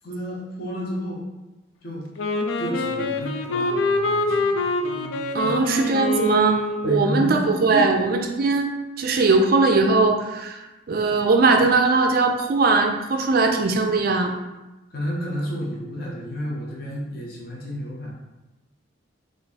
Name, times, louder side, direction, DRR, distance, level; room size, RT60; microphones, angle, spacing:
voice 1, 0.0-1.2 1.8-2.0 2.6-5.5 6.8-7.4 7.7-7.9 14.9-18.1, equal, 45° left, -4 dB, 0.8 m, -31 dB
Wind instrument woodwind instrument, 2.2-7.2, left 2 dB, 70° left, 0.4 m, -25 dB
voice 2, 5.3-10.6 10.9-14.3, right 3 dB, 45° right, 3 dB, 0.4 m, -20 dB
3.4 x 2.5 x 4.1 m, 1.1 s
head